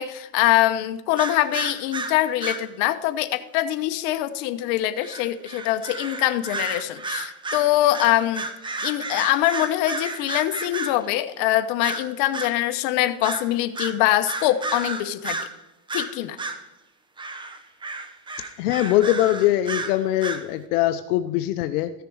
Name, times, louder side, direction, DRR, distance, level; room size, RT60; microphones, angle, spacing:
voice 1, 0.0-8.5 8.8-15.4 15.9-16.4, left 14 dB, 60° left, 9 dB, 0.9 m, -23 dB
sound 1, 1.2-2.7 5.0-11.1 11.8-12.5 13.2-13.5 13.8-15.6 15.9-16.6 17.2-20.5, right 3 dB, 10° right, 0.7 m, -32 dB
voice 2, 18.6-21.9, left 14 dB, 85° left, 9 dB, 0.7 m, -22 dB
14.0 x 6.8 x 4.7 m, 0.99 s
supercardioid pair, 130°, 44 cm